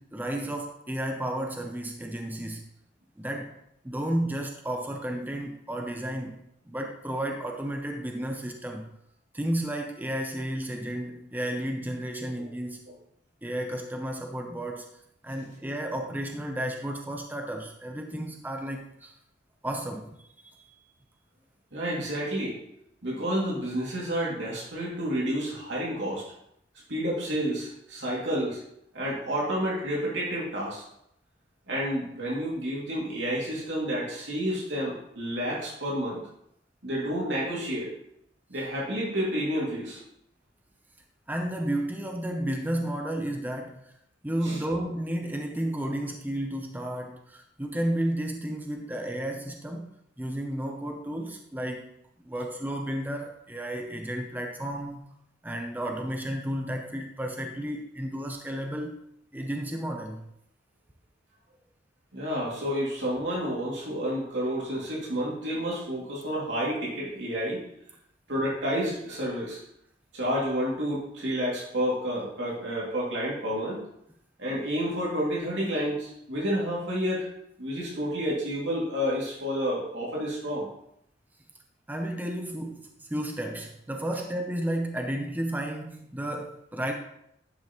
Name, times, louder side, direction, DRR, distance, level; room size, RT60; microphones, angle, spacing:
voice 1, 0.0-2.6 3.2-3.5 3.8-6.4 6.7-8.9 9.3-12.8 13.4-14.9 15.2-19.1 19.6-20.1 41.3-43.8 44.2-49.9 50.2-51.9 52.2-55.0 55.4-59.0 59.3-60.2 81.9-86.9, right 1 dB, 10° right, 3 dB, 0.7 m, -32 dB
voice 2, 21.7-22.6 23.0-26.2 26.9-28.6 28.9-30.8 31.7-36.2 36.8-37.9 38.5-40.0 44.4-44.6 62.1-67.6 68.3-69.6 70.1-73.8 74.4-77.3 77.6-80.7, equal, 75° right, -5 dB, 2.5 m, -30 dB
10.5 x 5.6 x 3.0 m, 0.75 s
head